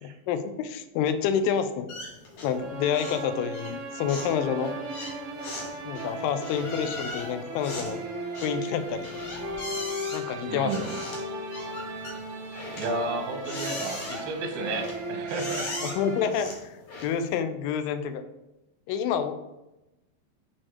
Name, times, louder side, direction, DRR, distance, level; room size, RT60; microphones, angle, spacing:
voice 1, 0.0-1.9 2.4-4.8 5.9-8.0 8.4-9.1 10.1-10.9 15.8-18.2 18.9-19.4, left 7 dB, 80° left, 9 dB, 2.3 m, -28 dB
sound 1, 1.9-2.6 2.9-3.3 3.5-17.3, left 2 dB, 55° left, 2.1 m, -39 dB
sound 2, 2.5-16.3, right 1 dB, 55° right, 1.8 m, -36 dB
voice 2, 10.5-10.9 12.8-15.7, right 3 dB, 90° right, 4 dB, 3.0 m, -32 dB
7.4 x 4.4 x 4.7 m, 0.97 s
omnidirectional pair, 4.1 m